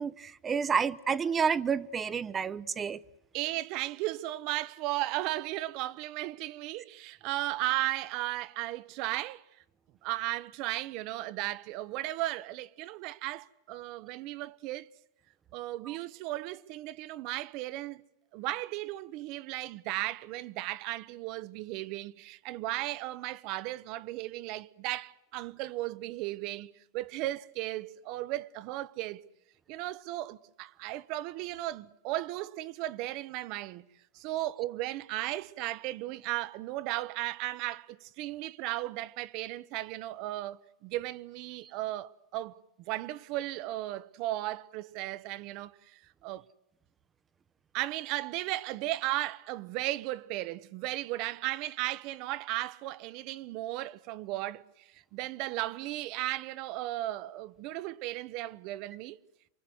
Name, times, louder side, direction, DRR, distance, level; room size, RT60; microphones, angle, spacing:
voice 1, 0.0-3.0, right 6 dB, 25° right, 0.9 m, -29 dB
voice 2, 3.3-9.4 10.0-14.9 15.5-18.0 18.3-29.2 29.7-33.9 34.1-42.6 42.9-46.4 47.7-59.2, right 17 dB, 55° right, 1.0 m, -35 dB
28.5 x 24.0 x 8.0 m
hypercardioid pair, 115°, 0 cm